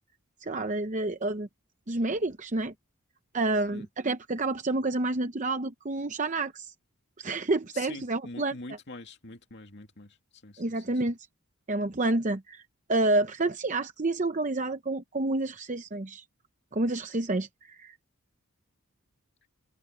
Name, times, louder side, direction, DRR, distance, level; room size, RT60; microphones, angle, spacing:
voice 1, 0.4-1.5 1.9-2.7 3.3-6.7 7.2-8.5 10.6-11.2 11.7-12.6 12.9-16.2 16.7-18.0, right 2 dB, 35° right, 0.8 m, -29 dB
voice 2, 7.7-11.0, left 2 dB, 50° left, 2.6 m, -45 dB
open air
head